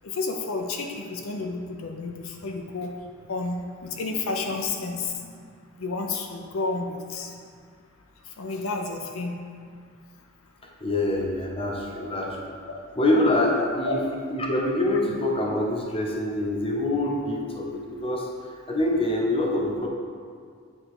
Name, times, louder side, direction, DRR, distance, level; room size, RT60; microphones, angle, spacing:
voice 1, 0.0-2.9 3.3-5.4 5.8-7.3 8.4-9.4 11.9-12.0 13.9-14.0, left 3 dB, 80° left, 2 dB, 0.6 m, -31 dB
voice 2, 10.8-12.6 12.9-14.0 14.3-18.3 18.7-19.9, left 1 dB, 30° left, -1 dB, 0.9 m, -25 dB
8.7 x 3.7 x 4.8 m, 2.1 s
head